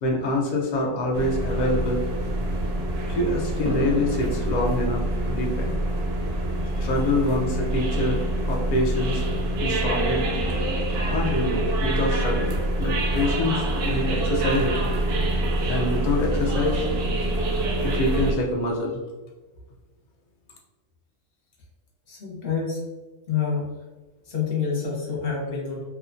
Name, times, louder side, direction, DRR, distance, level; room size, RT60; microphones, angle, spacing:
voice 1, 0.0-2.0 3.1-5.8 6.6-9.2 9.6-10.3 11.1-14.8 15.7-16.9 17.8-19.0, left 1 dB, 70° left, -1 dB, 0.4 m, -26 dB
sound 1, 1.1-18.3, right 1 dB, 65° right, 0.7 m, -25 dB
voice 2, 22.1-22.8 23.3-23.7 24.2-25.8, left 6 dB, 50° left, -3 dB, 0.9 m, -27 dB
2.7 x 2.2 x 2.5 m, 1.2 s
omnidirectional pair, 1.4 m